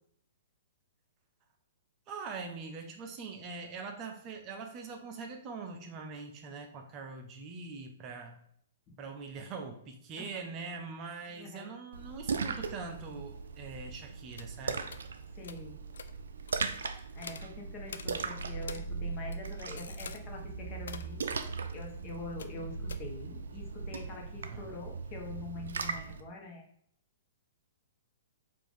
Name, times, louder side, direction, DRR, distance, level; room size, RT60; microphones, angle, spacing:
voice 1, 2.1-8.4 9.0-14.9 24.4-24.8, right 4 dB, 30° right, 3 dB, 0.6 m, -43 dB
voice 2, 11.4-11.7 15.4-15.8 17.1-21.2 21.7-26.6, left 2 dB, 35° left, 0 dB, 1.1 m, -45 dB
Splash splatter, 11.9-26.2, right 5 dB, 75° right, 0.4 m, -39 dB
sound 1, 14.3-14.5 14.9-15.0 15.4-15.6 15.9-16.1 16.5-16.6 17.2-17.5 17.9-18.1 18.6-18.9 19.2-20.2 20.8-21.1 22.4-22.6 22.9-23.0, left 6 dB, 75° left, 0.3 m, -45 dB
4.6 x 2.6 x 3.5 m, 0.66 s
hypercardioid pair, 120°, 0 cm